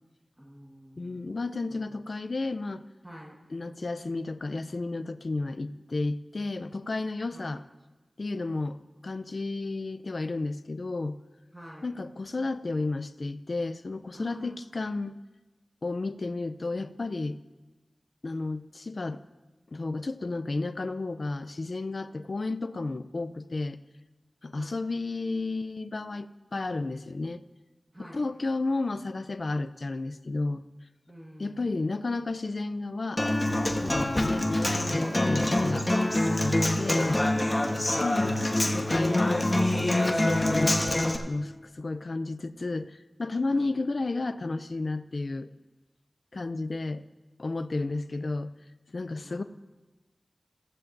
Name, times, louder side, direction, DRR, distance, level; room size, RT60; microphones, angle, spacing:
voice 1, 0.4-1.3 1.7-1.8 3.0-3.4 7.3-7.6 11.5-11.9 14.1-14.6 24.5-24.8 27.9-28.2 31.1-31.7 43.5-43.7 47.7-48.1 49.2-49.4, equal, 20° right, -3 dB, 1.6 m, -47 dB
voice 2, 1.0-2.8 3.5-7.6 8.2-8.8 9.0-11.2 11.8-15.1 15.8-17.4 18.2-19.2 19.7-23.8 24.4-27.4 28.0-30.6 31.4-33.2 33.8-35.9 36.4-37.2 38.0-38.4 38.7-40.8 41.3-45.5 46.3-47.0 47.4-48.5 48.9-49.4, left 3 dB, 65° left, 13 dB, 0.5 m, -32 dB
Human voice / Acoustic guitar, 33.2-41.2, left 1 dB, 30° left, 1.2 m, -25 dB
15.0 x 14.5 x 2.6 m, 1.1 s
wide cardioid pair, 50°, 0 cm